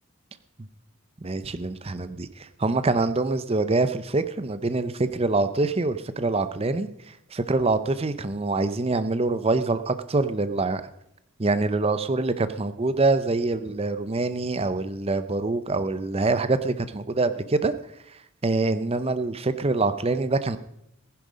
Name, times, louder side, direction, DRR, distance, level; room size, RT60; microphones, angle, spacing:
voice 1, 1.2-10.8 11.4-17.7 18.4-20.6, right 3 dB, 25° right, 12 dB, 0.6 m, -25 dB
15.0 x 10.5 x 5.2 m, 0.79 s
head